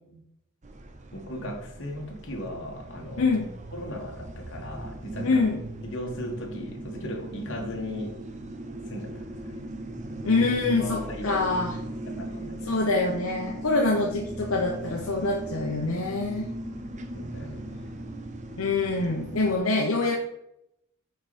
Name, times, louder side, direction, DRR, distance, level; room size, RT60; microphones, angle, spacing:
sound 1, 0.6-19.6, right 1 dB, 35° right, 0.7 m, -38 dB
voice 1, 1.1-3.3 3.7-5.4 5.8-8.1 8.9-9.6 10.8-11.5 12.1-12.8 17.1-17.9, left 1 dB, 60° left, 0 dB, 1.7 m, -37 dB
voice 2, 3.2-3.5 5.2-5.6 10.2-11.7 12.7-16.5 18.6-20.1, left 3 dB, 75° left, -1 dB, 0.9 m, -25 dB
8.4 x 4.8 x 4.3 m, 0.82 s
head